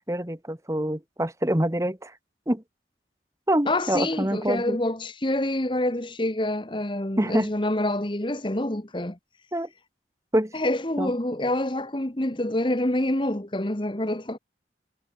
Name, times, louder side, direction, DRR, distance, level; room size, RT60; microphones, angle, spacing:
voice 1, 0.1-2.1 2.5-2.6 3.5-4.8 7.2-7.5 9.5-9.7 10.3-10.5 11.0-11.1, right 1 dB, 15° right, 1.5 m, -25 dB
voice 2, 3.6-9.2 10.5-14.4, left 1 dB, 25° left, 1.4 m, -27 dB
head